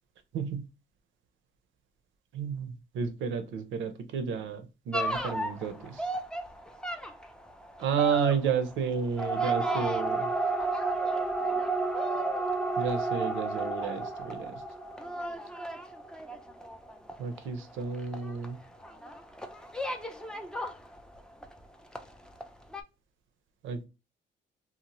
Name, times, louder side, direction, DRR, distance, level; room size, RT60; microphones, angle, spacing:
voice 1, 2.3-6.0 7.8-10.3 12.8-14.6 17.2-18.6 23.6-23.9, right 6 dB, 80° right, 9 dB, 0.6 m, -31 dB
sound 1, 4.9-21.6 21.9-22.5 22.7-22.8, right 2 dB, 5° left, 0.4 m, -33 dB
2.8 x 2.0 x 2.9 m, 0.28 s
cardioid pair, 90°, 20 cm